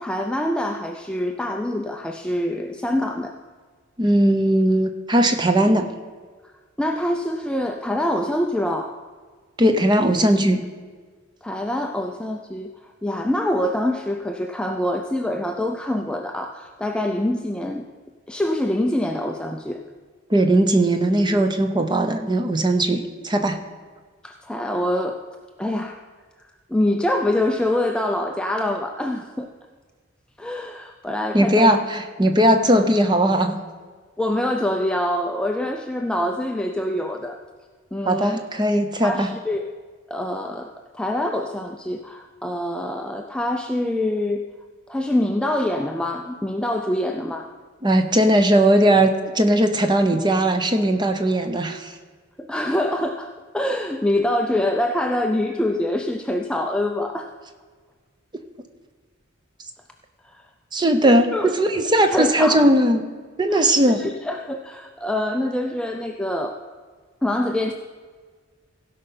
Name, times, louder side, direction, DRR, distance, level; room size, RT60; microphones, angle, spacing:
voice 1, 0.0-3.3 6.8-8.9 11.4-12.7 13.0-17.9 18.3-19.8 24.2-25.2 25.6-26.0 26.7-29.5 30.4-31.8 32.6-32.8 34.2-37.4 37.9-38.4 39.0-39.7 40.1-44.4 44.9-47.5 52.4-57.3 60.2-60.4 61.3-61.5 62.1-62.7 63.5-63.7 64.0-66.6 67.2-67.7, left 1 dB, 5° left, 3 dB, 0.4 m, -25 dB
voice 2, 4.0-5.9 9.6-10.6 20.3-23.6 31.3-33.6 38.0-39.3 47.8-51.9 60.7-63.0 63.4-64.0, right 1 dB, 20° right, 7 dB, 0.7 m, -18 dB
16.5 x 5.5 x 5.6 m, 1.5 s
head